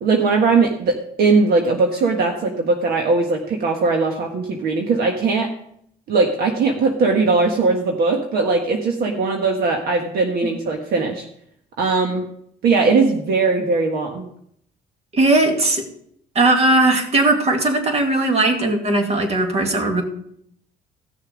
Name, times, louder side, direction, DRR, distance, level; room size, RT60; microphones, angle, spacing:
voice 1, 0.0-5.5 6.1-11.2 11.8-12.2 12.6-14.3, right 4 dB, 65° right, 2 dB, 1.5 m, -19 dB
voice 2, 15.1-15.9 16.3-20.0, right 2 dB, 35° right, 3 dB, 2.4 m, -18 dB
15.5 x 6.7 x 5.1 m, 0.70 s
cardioid pair, 110°, 17 cm